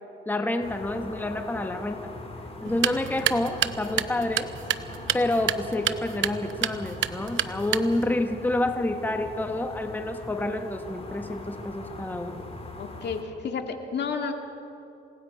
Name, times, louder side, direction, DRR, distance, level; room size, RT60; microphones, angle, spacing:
voice 1, 0.3-2.1 2.6-4.5 5.1-12.4, left 1 dB, 10° left, 6 dB, 1.2 m, -28 dB
sound 1, 0.6-13.2, left 2 dB, 30° left, 2.8 m, -41 dB
sound 2, 2.6-8.2, right 11 dB, 75° right, 0.8 m, -30 dB
voice 2, 12.8-14.3, left 5 dB, 60° left, 4 dB, 2.2 m, -31 dB
27.5 x 17.5 x 5.5 m, 2.8 s
cardioid pair, 90°, 20 cm